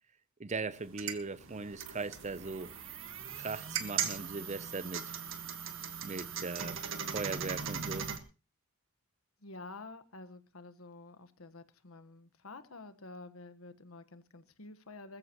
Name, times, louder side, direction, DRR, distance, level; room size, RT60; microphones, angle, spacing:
voice 1, 0.4-2.7 3.4-5.1 6.0-6.8 7.1-8.1, right 4 dB, 35° right, 0.6 m, -39 dB
sound 1, 0.8-8.2, right 7 dB, 65° right, 1.7 m, -39 dB
voice 2, 9.4-15.2, left 3 dB, 85° left, 1.4 m, -49 dB
20.5 x 14.5 x 3.1 m
head